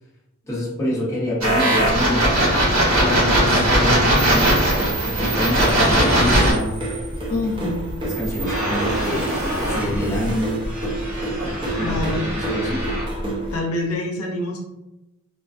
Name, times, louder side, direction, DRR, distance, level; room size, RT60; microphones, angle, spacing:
voice 1, 0.4-2.2 3.0-4.4 5.0-6.8 8.0-10.6 11.4-12.8, equal, 15° left, -7 dB, 0.8 m, -26 dB
sound 1, 1.4-6.5, right 1 dB, 75° right, 1.2 m, -18 dB
sound 2, 4.1-13.1, right 1 dB, 40° right, 0.8 m, -30 dB
sound 3, 4.4-13.6, right 1 dB, 25° right, 0.4 m, -29 dB
voice 2, 7.3-7.9 11.8-12.2 13.5-14.6, left 2 dB, 90° left, 1 dB, 0.5 m, -26 dB
2.4 x 2.3 x 2.4 m, 0.93 s
head